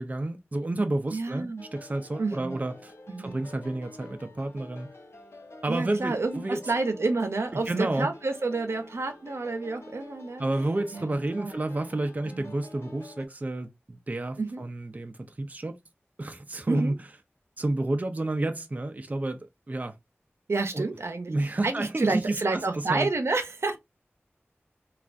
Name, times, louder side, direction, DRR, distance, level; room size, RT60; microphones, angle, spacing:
voice 1, 0.0-2.9 3.2-4.9 5.6-6.6 7.5-8.1 10.4-15.8 16.2-16.9 17.6-19.4 19.7-19.9 20.7-20.8 21.3-23.1, right 2 dB, 35° right, 0.4 m, -30 dB
voice 2, 1.1-1.6 2.2-2.6 3.1-3.4 5.7-10.4 10.9-11.6 12.3-12.5 14.4-14.6 16.7-16.9 20.5-23.8, right 3 dB, 80° right, 0.6 m, -29 dB
sound 1, 1.6-13.3, left 2 dB, 80° left, 0.8 m, -48 dB
3.2 x 2.3 x 2.4 m
wide cardioid pair, 65°, 4 cm